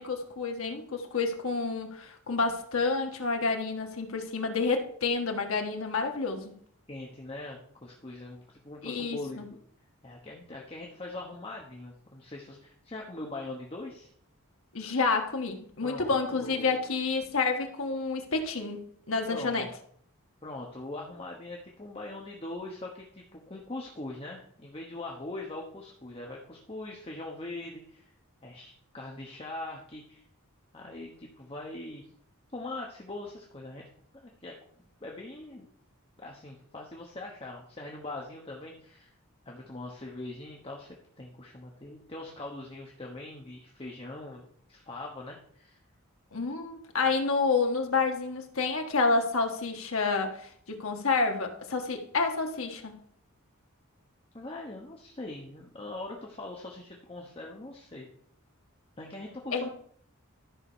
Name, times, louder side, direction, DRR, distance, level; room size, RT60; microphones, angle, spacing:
voice 1, 0.0-6.5 8.8-9.5 14.7-19.7 46.3-53.0 59.5-59.7, left 4 dB, 65° left, 4 dB, 1.4 m, -29 dB
voice 2, 6.9-9.4 10.0-14.1 15.8-16.9 19.3-19.7 20.4-28.1 28.4-30.2 30.7-32.0 32.5-33.8 34.1-34.5 35.0-35.7 36.2-39.1 39.4-45.8 54.3-58.1 59.0-59.7, left 2 dB, 25° left, -1 dB, 1.1 m, -42 dB
12.5 x 4.9 x 5.6 m, 0.63 s
head